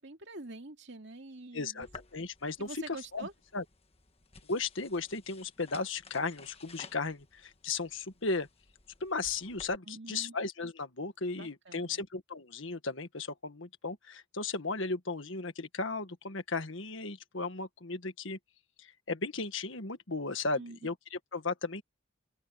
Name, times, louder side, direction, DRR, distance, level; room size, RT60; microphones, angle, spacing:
voice 1, 0.0-1.9 2.6-3.3 9.9-10.4 11.3-12.0 20.6-20.9, right 2 dB, 55° right, 2.5 m, -46 dB
voice 2, 1.5-1.9 2.1-3.3 3.5-3.6 4.5-8.5 9.0-18.4 18.8-21.8, left 3 dB, 65° left, 1.6 m, -35 dB
sound 1, 1.8-9.8, left 4 dB, 30° left, 1.4 m, -55 dB
head